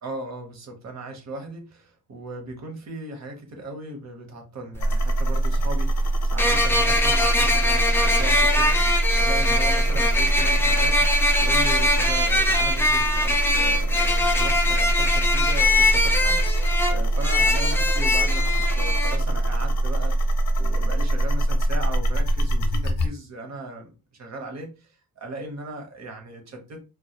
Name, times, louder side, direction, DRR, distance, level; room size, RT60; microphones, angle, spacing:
voice 1, 0.0-20.2 20.6-26.9, right 2 dB, 50° right, 0.8 m, -37 dB
sound 1, 4.7-4.8 6.4-19.2, left 2 dB, 5° left, 0.3 m, -22 dB
sound 2, 4.8-23.1, right 1 dB, 60° left, 0.6 m, -23 dB
2.2 x 2.1 x 2.8 m
wide cardioid pair, 130°, 35 cm